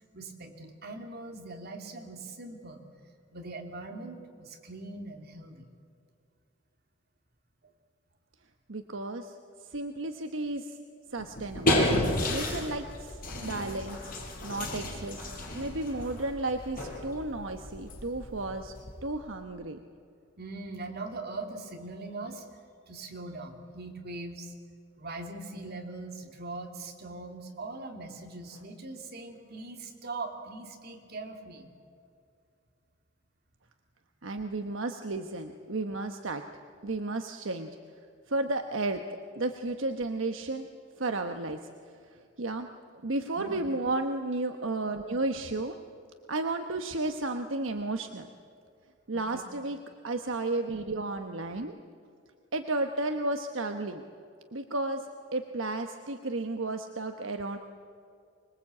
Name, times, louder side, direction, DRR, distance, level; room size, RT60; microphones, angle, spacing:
voice 1, 0.1-2.8 3.3-5.7 20.4-22.4 22.9-24.5 25.0-31.7 43.4-43.6 49.1-49.5, right 2 dB, 55° right, 3 dB, 3.0 m, -41 dB
voice 2, 8.7-9.3 9.6-10.8 11.1-11.8 12.3-14.1 14.4-18.7 19.0-19.8 34.2-36.4 36.8-37.7 38.3-39.0 39.4-40.7 41.0-41.6 41.9-42.7 43.0-45.8 46.3-48.3 49.1-49.8 50.0-51.7 52.5-54.0 54.5-57.6, right 2 dB, 75° right, 6 dB, 1.1 m, -33 dB
sound 1, 11.2-19.3, left 1 dB, 45° left, 5.5 m, -32 dB
25.5 x 21.5 x 8.5 m, 2.4 s
head